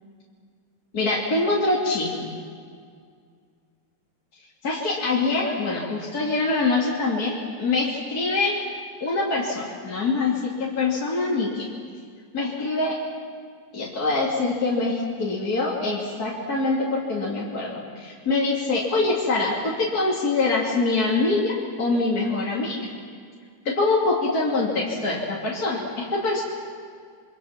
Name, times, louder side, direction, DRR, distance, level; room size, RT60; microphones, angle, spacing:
voice 1, 0.9-2.3 4.6-8.7 9.0-11.7 12.3-13.0 13.7-22.9 23.6-26.4, left 3 dB, 45° left, -5 dB, 3.3 m, -24 dB
28.0 x 25.0 x 6.0 m, 2.1 s
omnidirectional pair, 2.2 m